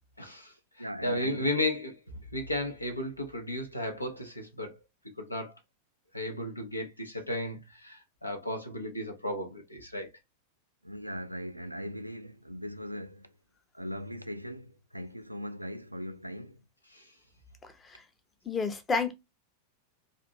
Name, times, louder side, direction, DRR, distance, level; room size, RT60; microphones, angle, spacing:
voice 1, 0.2-0.5 1.0-1.9 2.3-4.7 5.2-5.5 6.1-10.1, left 1 dB, 85° left, 0.8 m, -34 dB
voice 2, 0.8-1.5 10.8-13.3 13.7-16.6, equal, 90° right, 0.3 m, -39 dB
voice 3, 17.6-18.0 18.5-19.1, left 4 dB, 20° left, 0.7 m, -31 dB
3.3 x 2.5 x 2.8 m
figure-of-eight pair, 90°, 0 cm